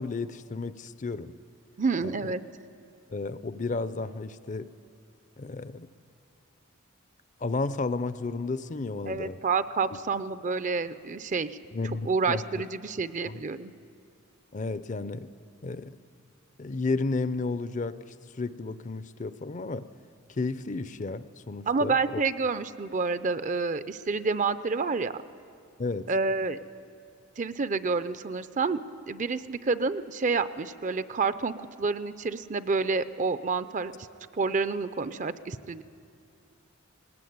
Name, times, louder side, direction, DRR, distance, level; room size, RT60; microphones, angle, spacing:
voice 1, 0.0-1.3 2.0-2.1 3.1-4.7 5.4-5.9 7.4-9.4 11.7-12.6 13.2-13.4 14.5-15.3 15.6-16.0 16.6-18.0 18.3-19.9 20.3-22.2 25.8-26.1, left 3 dB, 35° left, 14 dB, 0.5 m, -32 dB
voice 2, 1.8-2.4 9.1-11.6 12.1-13.7 21.7-25.2 26.1-26.6 27.4-28.8 29.1-33.9 34.3-35.8, right 4 dB, 35° right, 14 dB, 0.5 m, -28 dB
19.5 x 18.5 x 9.4 m, 2.6 s
head